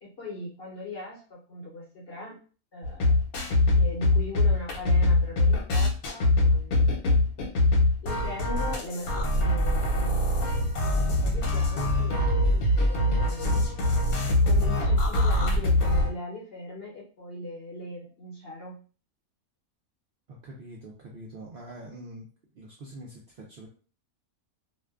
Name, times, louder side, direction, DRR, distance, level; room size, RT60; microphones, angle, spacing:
voice 1, 0.0-2.4 2.7-3.2 3.7-7.3 7.7-10.6 11.0-13.9 14.4-18.8, left 1 dB, 55° left, -3 dB, 0.8 m, -39 dB
sound 1, 2.8-16.1, left 2 dB, 80° left, 1.1 m, -23 dB
voice 2, 20.3-22.3 22.6-23.7, right 1 dB, 75° right, -3 dB, 0.5 m, -44 dB
2.5 x 2.2 x 2.3 m, 0.38 s
omnidirectional pair, 1.5 m